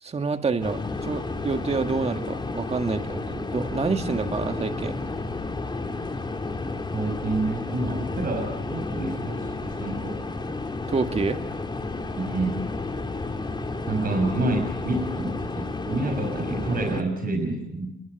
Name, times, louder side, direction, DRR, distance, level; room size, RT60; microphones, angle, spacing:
voice 1, 0.0-4.9 10.9-11.4, right 4 dB, 30° right, 7 dB, 1.8 m, -27 dB
sound 1, 0.6-17.0, left 3 dB, 25° left, 3.1 m, -31 dB
voice 2, 6.9-10.1 12.2-12.6 13.9-17.9, right 2 dB, 45° right, 4 dB, 6.4 m, -28 dB
29.5 x 21.0 x 8.2 m, 0.78 s
cardioid pair, 90°, 20 cm